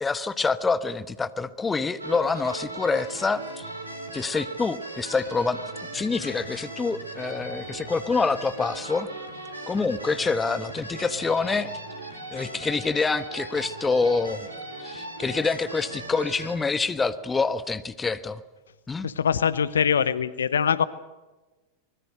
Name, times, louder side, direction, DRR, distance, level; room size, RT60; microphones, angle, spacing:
voice 1, 0.0-3.7 4.1-5.6 5.9-9.1 9.7-11.7 12.3-14.5 14.8-18.4 18.9-19.1, left 4 dB, 15° left, 14 dB, 1.2 m, -26 dB
sound 1, 2.0-16.6, right 2 dB, 80° right, 4.1 m, -38 dB
voice 2, 19.0-20.8, left 7 dB, 70° left, 18 dB, 0.9 m, -23 dB
25.0 x 20.5 x 6.6 m, 1.2 s
figure-of-eight pair, 90°, 0 cm